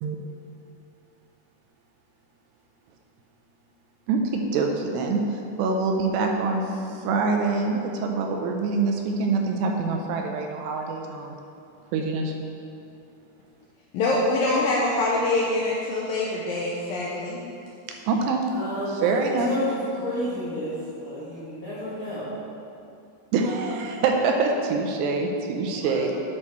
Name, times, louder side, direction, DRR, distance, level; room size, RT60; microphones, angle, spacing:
voice 1, 4.1-6.6 6.9-11.4 11.9-12.3 18.1-18.4 19.0-19.5 23.3-26.1, right 4 dB, 80° right, 2 dB, 2.7 m, -25 dB
voice 2, 13.9-17.4, left 2 dB, 80° left, -4 dB, 2.2 m, -24 dB
voice 3, 18.5-22.3 25.8-26.0, left 1 dB, 55° left, -11 dB, 1.5 m, -31 dB
9.8 x 6.3 x 4.4 m, 2.6 s
omnidirectional pair, 5.0 m